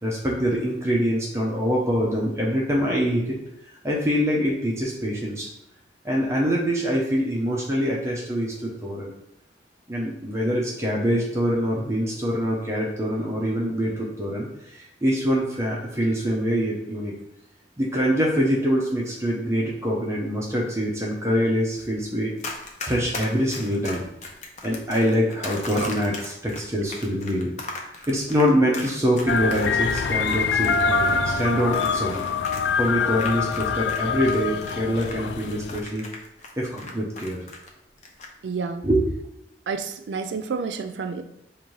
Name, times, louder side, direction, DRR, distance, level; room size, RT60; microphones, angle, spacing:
voice 1, 0.0-3.4 3.8-5.5 6.0-9.1 9.9-17.1 17.8-22.3 22.8-24.0 24.6-27.5 28.1-32.2 32.7-36.0 36.6-37.4 38.8-39.0, equal, 15° right, -3 dB, 0.6 m, -24 dB
Run, 22.4-34.0 34.3-37.7 38.0-38.3, left 3 dB, 40° left, 0.6 m, -37 dB
sound 1, 29.3-35.8, left 5 dB, 75° left, 0.3 m, -25 dB
voice 2, 38.4-38.9 39.7-41.2, right 5 dB, 85° right, 7 dB, 0.4 m, -29 dB
5.2 x 2.6 x 3.1 m, 0.87 s
head